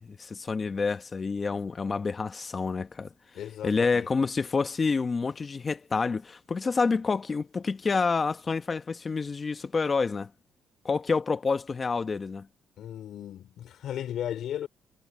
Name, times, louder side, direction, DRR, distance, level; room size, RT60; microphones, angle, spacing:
voice 1, 0.0-3.1 3.6-10.3 10.8-12.5, left 4 dB, 35° left, 1.3 m, -28 dB
voice 2, 3.3-4.1 12.8-14.7, left 10 dB, 75° left, 4.1 m, -35 dB
cardioid pair, 90°, 0 cm